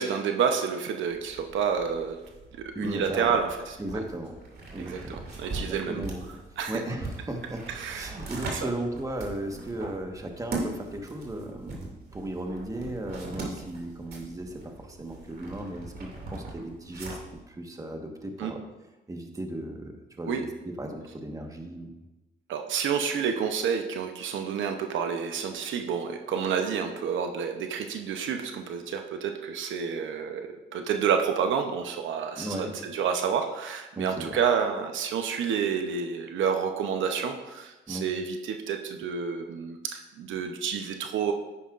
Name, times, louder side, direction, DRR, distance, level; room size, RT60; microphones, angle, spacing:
voice 1, 0.0-2.2 2.6-3.8 4.8-6.1 6.6-6.8 7.8-8.2 8.5-8.7 18.4-18.5 20.3-20.4 22.5-41.3, right 7 dB, 75° right, 5 dB, 0.8 m, -29 dB
sound 1, 1.1-17.4, right 2 dB, 50° right, 2.6 m, -41 dB
voice 2, 2.7-3.4 3.8-4.3 4.7-5.2 5.7-6.2 6.7-17.2 17.5-18.6 19.1-21.9 32.4-32.7 33.9-34.4 37.9-38.1, right 1 dB, 15° right, 3 dB, 1.4 m, -36 dB
9.7 x 9.5 x 2.5 m, 1.0 s
cardioid pair, 90°, 20 cm